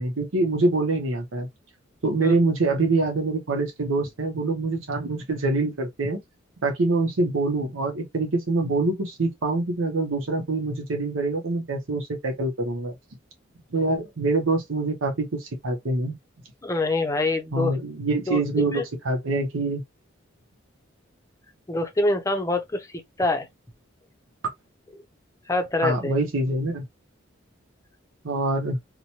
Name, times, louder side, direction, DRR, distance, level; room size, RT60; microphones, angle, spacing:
voice 1, 0.0-1.5 2.0-6.2 6.6-12.9 13.7-16.1 17.5-19.8 25.8-26.9 28.2-28.8, right 2 dB, 85° right, 0.8 m, -25 dB
voice 2, 16.6-17.8 18.3-18.8 21.7-23.5 25.5-26.1, left 2 dB, 15° left, 0.6 m, -25 dB
2.9 x 2.1 x 2.8 m
head